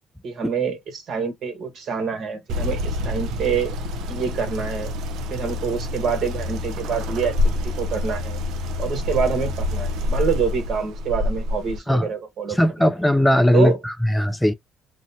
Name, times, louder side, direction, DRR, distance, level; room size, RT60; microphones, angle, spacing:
voice 1, 0.2-3.7 4.1-4.9 5.3-8.4 8.8-12.9 13.5-13.8, right 6 dB, 60° right, 1.2 m, -26 dB
sound 1, 2.5-11.8, left 2 dB, 75° right, 0.5 m, -27 dB
voice 2, 12.5-14.5, left 1 dB, 5° left, 0.3 m, -19 dB
2.7 x 2.1 x 2.7 m
cardioid pair, 100°, 0 cm